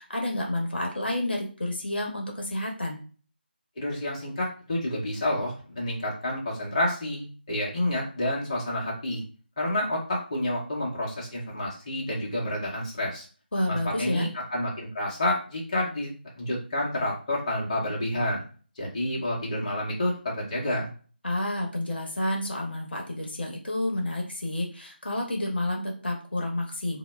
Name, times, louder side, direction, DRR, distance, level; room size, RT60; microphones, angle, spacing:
voice 1, 0.0-3.0 13.5-14.3 21.2-27.0, left 1 dB, 65° left, 0 dB, 0.8 m, -30 dB
voice 2, 3.8-9.2 9.6-13.3 13.7-16.1 16.4-18.4 18.8-20.9, left 1 dB, 35° left, -3 dB, 0.7 m, -29 dB
2.0 x 2.0 x 3.2 m, 0.39 s
figure-of-eight pair, 155°, 6 cm